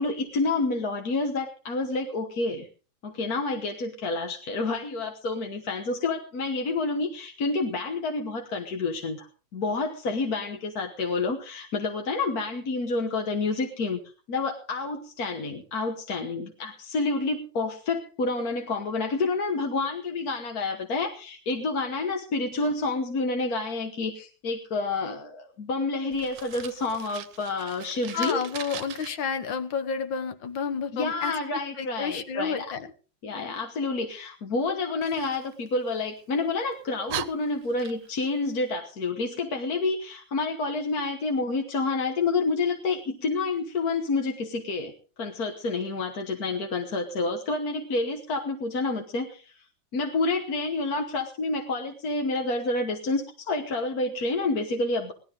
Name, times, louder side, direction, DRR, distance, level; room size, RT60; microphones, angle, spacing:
voice 1, 0.0-2.7 3.0-14.0 14.3-28.4 30.9-32.7 33.2-44.9 45.2-49.5 49.9-55.1, left 3 dB, 50° left, 4 dB, 1.7 m, -29 dB
Fire, 26.1-29.1 35.0-36.2 36.7-36.8 37.1-38.3, right 10 dB, 70° right, 1.4 m, -39 dB
voice 2, 28.1-31.3 31.8-32.9, left 6 dB, 70° left, 9 dB, 2.0 m, -30 dB
18.5 x 13.0 x 3.9 m, 0.37 s
omnidirectional pair, 2.2 m